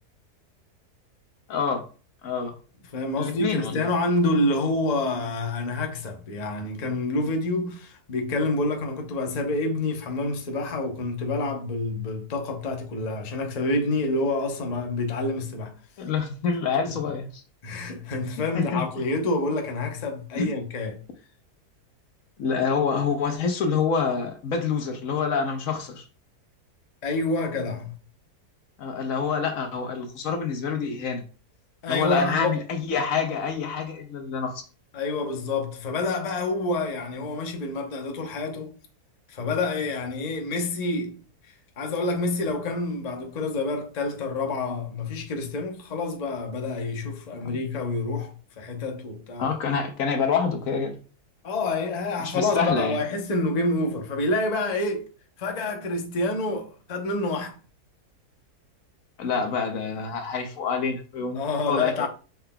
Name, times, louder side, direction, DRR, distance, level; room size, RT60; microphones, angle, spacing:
voice 1, 1.5-1.8 2.2-2.5 3.2-3.9 16.0-17.4 18.5-18.8 20.3-20.5 22.4-26.0 28.8-31.2 31.9-34.6 47.4-47.6 49.4-50.9 52.2-53.0 59.2-61.4 61.7-61.9, left 5 dB, 65° left, 1.0 m, -27 dB
voice 2, 2.9-15.7 17.6-21.0 27.0-27.9 31.8-32.6 34.9-38.7 39.3-41.2 41.8-48.3 48.6-49.5 51.4-55.1 55.4-57.6 61.3-62.1, left 2 dB, 50° left, 0.5 m, -27 dB
5.6 x 3.7 x 2.2 m
omnidirectional pair, 1.7 m